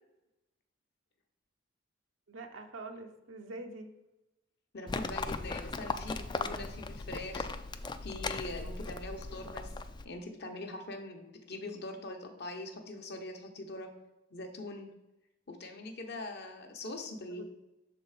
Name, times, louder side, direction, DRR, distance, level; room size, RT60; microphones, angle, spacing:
voice 1, 2.3-3.9 17.4-17.5, right 2 dB, 80° right, 4 dB, 0.7 m, -44 dB
voice 2, 4.7-7.5 8.0-9.7 10.0-13.9 14.3-14.9 15.5-17.4, left 2 dB, 60° left, 4 dB, 1.0 m, -42 dB
Livestock farm animals working animals, 4.9-10.0, left 3 dB, 25° left, 0.3 m, -38 dB
6.5 x 3.9 x 4.8 m, 0.99 s
head